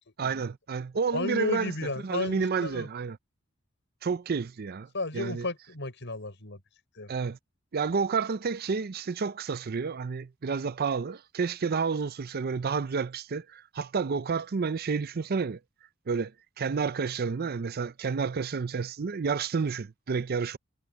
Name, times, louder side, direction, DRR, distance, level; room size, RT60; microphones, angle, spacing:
voice 1, 0.2-1.7 2.0-3.2 4.0-4.9 5.1-5.5 7.1-7.4 7.7-15.6 16.1-16.3 16.6-20.6, right 5 dB, 50° right, 0.5 m, -30 dB
voice 2, 1.1-2.9 4.9-6.6 6.9-7.1, left 2 dB, 60° left, 6.2 m, -33 dB
head